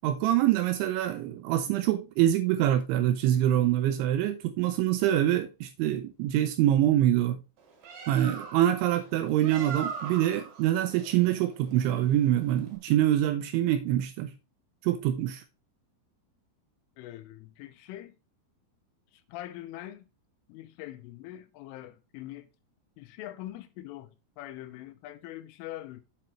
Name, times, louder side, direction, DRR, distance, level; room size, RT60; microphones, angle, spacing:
voice 1, 0.0-7.4 8.1-14.3 14.8-15.4, right 12 dB, 85° right, 2.7 m, -25 dB
Bird, 7.6-12.8, right 6 dB, 60° right, 4.1 m, -41 dB
voice 2, 17.0-18.2 19.1-20.1 20.5-22.5 23.0-24.1 24.4-26.0, left 14 dB, 85° left, 3.3 m, -43 dB
7.9 x 7.6 x 3.1 m
omnidirectional pair, 5.8 m